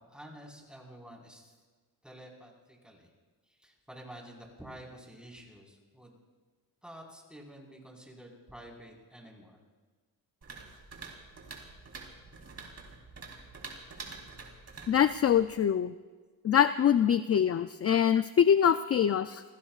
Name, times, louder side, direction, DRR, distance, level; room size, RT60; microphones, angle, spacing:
voice 1, 0.0-1.5 2.0-3.1 3.5-6.2 6.8-9.6, right 1 dB, ahead, -1 dB, 4.6 m, -50 dB
sound 1, 10.4-15.6, right 4 dB, 40° right, 3.8 m, -47 dB
voice 2, 14.9-15.9 16.4-19.4, left 9 dB, 40° left, 12 dB, 0.5 m, -24 dB
30.0 x 16.5 x 2.4 m, 1.4 s
cardioid pair, 90°, 38 cm